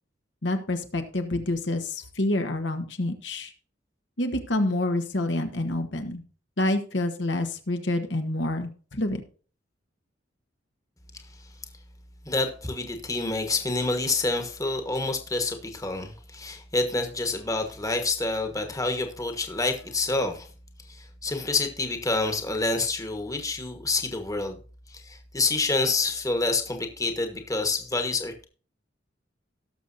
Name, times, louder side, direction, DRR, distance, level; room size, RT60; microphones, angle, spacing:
voice 1, 0.4-3.5 4.2-6.2 6.6-9.2, left 1 dB, 70° left, 1.4 m, -27 dB
voice 2, 12.2-20.5 20.9-24.6 24.9-28.5, left 3 dB, 20° left, 1.4 m, -28 dB
18.0 x 6.6 x 2.7 m
head